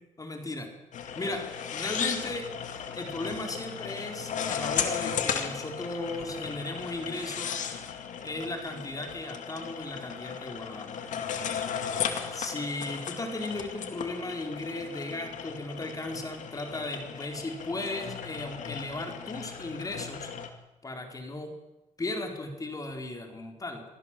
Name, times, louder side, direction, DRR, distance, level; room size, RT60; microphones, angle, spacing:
voice 1, 0.2-0.7 1.1-1.4 1.7-2.5 2.9-7.5 8.2-11.0 12.3-20.3 20.8-21.6 22.0-23.8, left 2 dB, 25° left, 4 dB, 4.5 m, -36 dB
sound 1, 0.9-20.5, left 7 dB, 70° left, 2.4 m, -36 dB
24.5 x 15.5 x 7.7 m, 1.0 s
cardioid pair, 95°, 13 cm